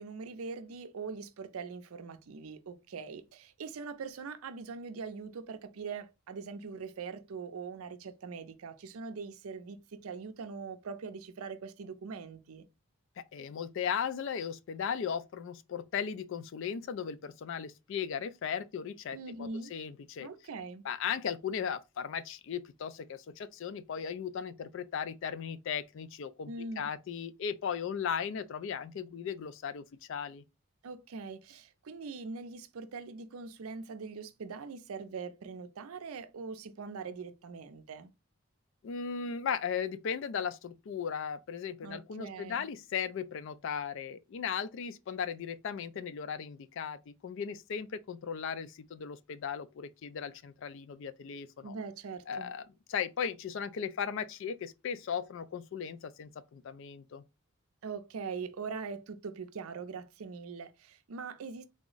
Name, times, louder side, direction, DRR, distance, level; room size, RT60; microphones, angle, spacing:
voice 1, 0.0-12.6 19.1-19.7 20.2-20.8 26.5-26.9 30.8-38.1 41.8-42.7 51.6-52.5 57.8-61.7, right 5 dB, 75° right, 0.5 m, -42 dB
voice 2, 13.3-20.3 20.8-30.4 38.8-51.7 52.3-52.6 52.9-57.2, left 7 dB, 60° left, 0.3 m, -37 dB
3.5 x 2.0 x 3.8 m
head